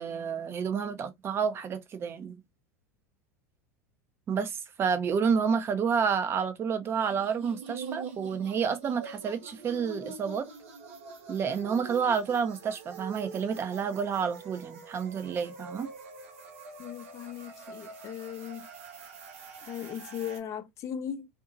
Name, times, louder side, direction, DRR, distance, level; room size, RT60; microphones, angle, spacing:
voice 1, 0.0-2.3 4.3-10.5 11.3-15.9, right 6 dB, 30° right, 0.6 m, -29 dB
sound 1, 6.8-20.4, right 4 dB, 70° right, 0.9 m, -45 dB
voice 2, 16.8-18.7 19.7-21.3, left 9 dB, 40° left, 0.6 m, -38 dB
2.7 x 2.6 x 2.4 m
hypercardioid pair, 85°, 8 cm